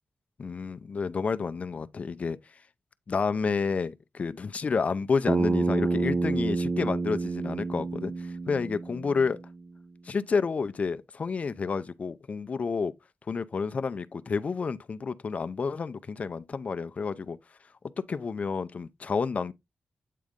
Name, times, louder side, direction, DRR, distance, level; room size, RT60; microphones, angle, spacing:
voice 1, 0.4-2.4 3.1-9.4 10.0-12.9 13.3-17.4 18.0-19.5, left 5 dB, 40° left, 0.5 m, -30 dB
Bass guitar, 5.3-9.6, right 3 dB, 20° right, 0.4 m, -28 dB
8.4 x 3.8 x 3.6 m
wide cardioid pair, 145°, 3 cm